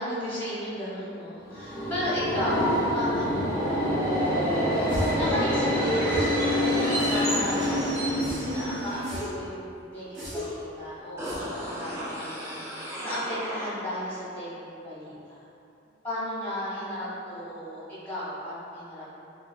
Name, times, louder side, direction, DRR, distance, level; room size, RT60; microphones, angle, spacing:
voice 1, 0.0-4.2 5.1-6.3 6.8-15.4 16.0-19.2, left 1 dB, 10° left, -10 dB, 1.0 m, -34 dB
Subway metro underground, 1.5-9.2, equal, 30° right, 0.9 m, -26 dB
sound 1, 4.9-5.3 6.1-6.4 7.0-7.5 8.2-8.6 9.0-9.4 10.1-10.6 11.2-11.6, left 1 dB, 60° right, 0.9 m, -35 dB
sound 2, 11.2-14.2 14.5-14.6, equal, 15° right, 0.5 m, -36 dB
3.4 x 3.2 x 2.2 m, 2.8 s
head